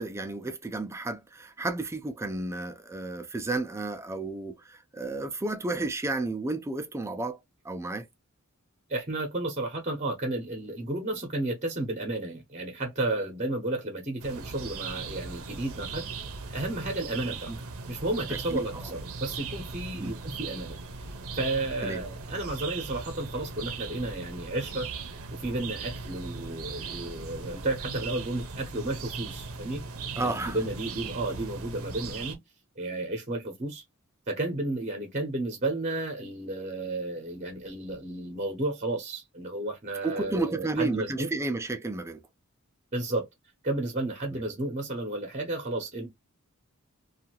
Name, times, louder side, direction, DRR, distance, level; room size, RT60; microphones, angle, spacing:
voice 1, 0.0-7.4 7.6-8.1 17.5-17.6 18.5-18.6 19.9-20.1 21.8-22.0 30.2-30.6 40.0-42.2 44.3-44.4, right 2 dB, 15° right, 0.4 m, -32 dB
voice 2, 8.9-16.1 16.5-17.5 17.9-20.8 21.3-24.9 25.3-29.8 30.2-32.4 32.8-33.8 34.3-41.3 42.9-43.3 43.6-46.1, right 2 dB, 35° right, 0.8 m, -32 dB
sound 1, 14.2-32.4, right 4 dB, 80° right, 0.7 m, -38 dB
2.7 x 2.4 x 2.8 m
head